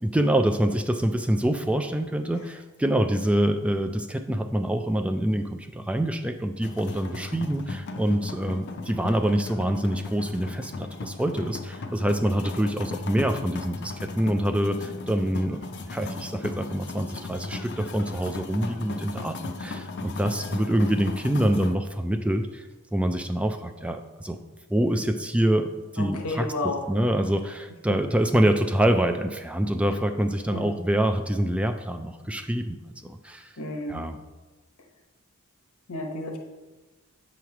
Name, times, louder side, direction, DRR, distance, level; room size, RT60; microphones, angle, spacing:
voice 1, 0.0-24.4 24.7-33.5 33.9-34.2, right 1 dB, 5° right, 7 dB, 0.3 m, -26 dB
sound 1, 6.6-21.7, left 3 dB, 55° left, 0.5 m, -36 dB
voice 2, 26.0-26.8 30.5-30.8 33.6-34.0 35.9-36.4, left 2 dB, 90° left, 3 dB, 1.0 m, -31 dB
8.0 x 3.1 x 5.8 m, 1.2 s
head